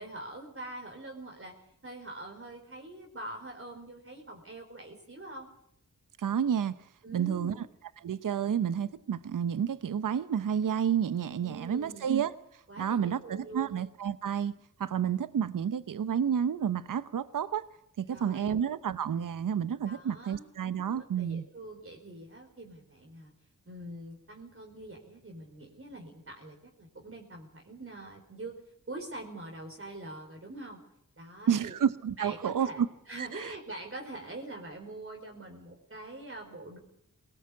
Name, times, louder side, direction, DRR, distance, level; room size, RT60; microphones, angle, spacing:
voice 1, 0.0-1.6 1.8-5.5 7.0-7.6 11.4-12.1 12.7-13.8 18.1-18.6 19.8-20.5 20.9-23.3 23.7-28.6 28.9-30.8 31.2-31.8 32.2-36.8, right 2 dB, 40° right, 4.6 m, -44 dB
voice 2, 6.2-6.7 7.1-7.5 8.0-12.3 12.8-14.5 14.8-17.7 18.0-21.4 31.5-32.9 33.2-33.5, right 8 dB, 70° right, 0.9 m, -30 dB
20.0 x 18.5 x 8.5 m
cardioid pair, 45°, 33 cm